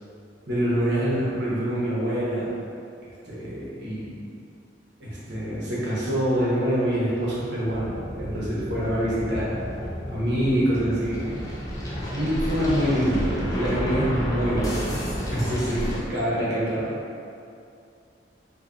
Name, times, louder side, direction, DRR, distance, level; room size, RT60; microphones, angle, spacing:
voice 1, 0.5-2.5 3.3-4.2 5.0-9.5 10.1-11.2 12.1-14.9 15.3-16.9, equal, 60° right, -8 dB, 0.9 m, -25 dB
sound 1, 7.8-16.0, equal, 20° left, 0.4 m, -31 dB
2.7 x 2.6 x 3.6 m, 2.5 s
head